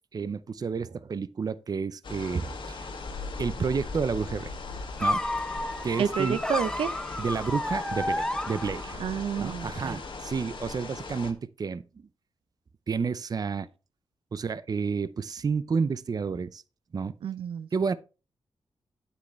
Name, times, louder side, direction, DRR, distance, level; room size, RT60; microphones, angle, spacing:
voice 1, 0.1-3.0 3.4-4.5 5.0-5.2 5.8-6.4 7.2-9.0 9.4-12.0 12.9-13.7 14.3-16.6 16.9-17.1 17.7-17.9, right 5 dB, 45° right, 0.6 m, -30 dB
sound 1, 2.0-11.3, left 3 dB, 65° left, 1.8 m, -39 dB
sound 2, 5.0-9.1, left 1 dB, 5° left, 0.5 m, -31 dB
voice 2, 6.0-7.0 9.0-10.0 17.2-17.7, right 7 dB, 80° right, 0.6 m, -30 dB
8.7 x 8.1 x 3.2 m
cardioid pair, 80°, 9 cm